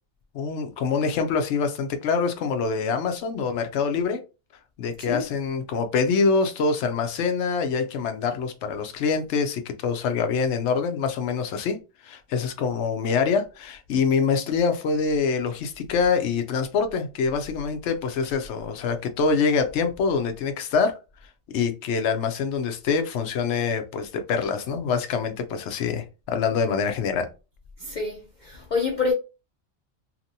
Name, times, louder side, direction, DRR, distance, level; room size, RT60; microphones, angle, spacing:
voice 1, 0.3-4.2 4.8-11.8 12.0-21.0 21.5-27.3, left 5 dB, 65° left, 0.8 m, -25 dB
voice 2, 27.8-29.1, left 4 dB, 85° left, 0.4 m, -27 dB
2.8 x 2.5 x 2.7 m
omnidirectional pair, 1.4 m